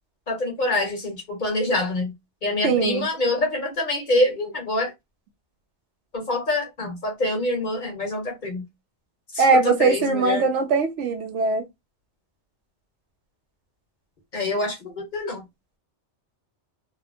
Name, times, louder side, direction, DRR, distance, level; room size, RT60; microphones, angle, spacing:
voice 1, 0.3-2.1 2.4-4.9 6.1-8.6 9.3-10.5 14.3-15.4, left 2 dB, 45° left, 1.0 m, -25 dB
voice 2, 2.6-3.1 9.4-11.6, right 4 dB, 85° right, 1.0 m, -20 dB
2.7 x 2.4 x 2.5 m
omnidirectional pair, 1.2 m